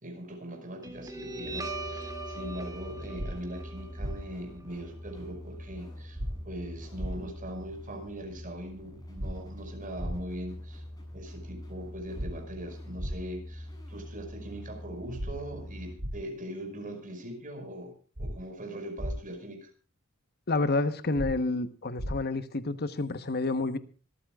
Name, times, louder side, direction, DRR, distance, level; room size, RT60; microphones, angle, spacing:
voice 1, 0.0-6.2 6.4-10.8 11.1-19.7, equal, 40° right, 5.3 m, -41 dB
Guitar, 0.8-7.8, right 2 dB, 15° right, 2.9 m, -42 dB
sound 1, 1.4-15.9, left 1 dB, 20° left, 7.6 m, -44 dB
sound 2, 3.2-3.3 4.0-4.1 6.2-6.3 7.0-7.1 9.2-9.3 10.0-10.1 12.2-12.3 13.0-13.1 15.2-15.3 16.0-16.1 18.2-18.3 19.0-19.1 21.2-21.3 22.0-22.1, equal, 75° right, 2.5 m, -33 dB
voice 2, 20.5-23.8, left 3 dB, 50° left, 1.1 m, -29 dB
25.5 x 14.0 x 2.4 m
head